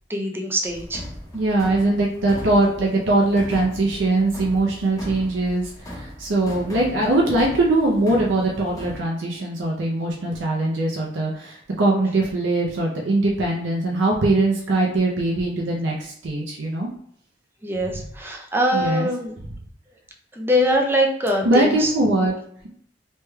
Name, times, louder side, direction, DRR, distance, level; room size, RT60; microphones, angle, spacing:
voice 1, 0.1-1.0 6.7-6.9 17.6-19.4 20.3-21.9, equal, 10° right, 2 dB, 0.4 m, -23 dB
sound 1, 0.6-9.0, equal, 20° left, 0.7 m, -38 dB
voice 2, 1.3-16.9 18.7-19.1 21.4-22.3, right 2 dB, 85° right, -2 dB, 0.5 m, -21 dB
3.2 x 3.1 x 2.2 m, 0.68 s
head